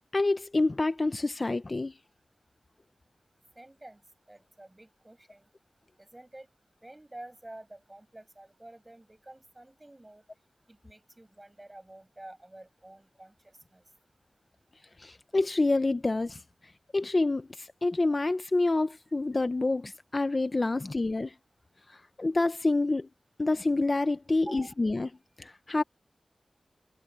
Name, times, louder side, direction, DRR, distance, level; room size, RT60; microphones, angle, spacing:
voice 1, 0.1-1.9 15.0-16.4 16.9-21.3 21.9-23.1 23.4-25.1 25.4-25.8, left 2 dB, 40° left, 0.8 m, -27 dB
voice 2, 3.6-4.0 4.3-5.5 6.0-6.5 6.8-10.2 10.7-13.8 19.1-19.2 24.5-24.7, right 1 dB, 20° right, 6.9 m, -49 dB
wide cardioid pair, 70°, 0 cm